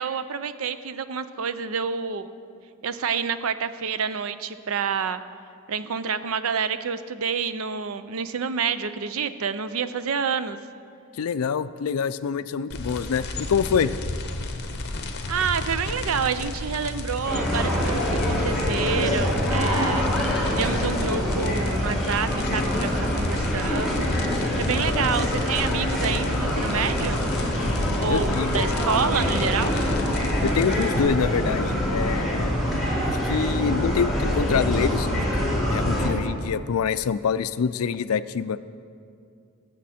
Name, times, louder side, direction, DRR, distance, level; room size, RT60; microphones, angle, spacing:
voice 1, 0.0-2.3 2.8-5.2 5.7-10.6 15.3-20.1 20.5-24.1 24.6-27.2 28.0-29.8, right 6 dB, 70° right, 13 dB, 0.5 m, -28 dB
voice 2, 11.2-13.9 28.1-28.6 30.4-32.5 33.1-35.1 35.4-38.6, left 6 dB, 75° left, 14 dB, 0.4 m, -26 dB
sound 1, 12.7-31.0, left 2 dB, 50° left, 0.9 m, -32 dB
sound 2, 17.2-36.1, equal, ahead, 2.1 m, -25 dB
18.5 x 7.5 x 4.3 m, 2.3 s
head